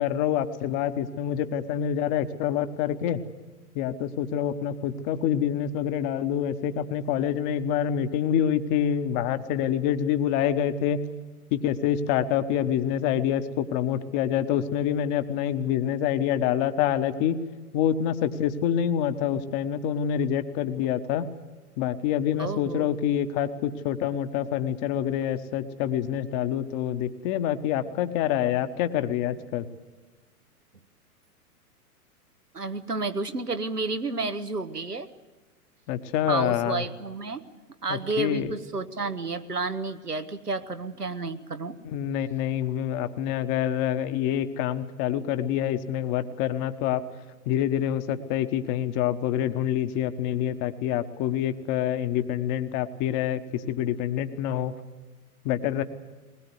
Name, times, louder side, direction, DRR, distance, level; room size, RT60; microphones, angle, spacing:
voice 1, 0.0-3.2 3.7-11.0 11.5-17.4 17.7-21.3 21.8-29.7 35.9-36.8 37.9-38.5 41.8-47.0 47.5-54.7 55.4-55.8, left 10 dB, 30° left, 10 dB, 1.2 m, -26 dB
voice 2, 22.4-22.9 32.5-35.1 36.3-37.4 37.8-41.8, right 3 dB, 85° right, 10 dB, 1.4 m, -31 dB
21.0 x 20.0 x 8.1 m, 1.3 s
figure-of-eight pair, 105°, 46 cm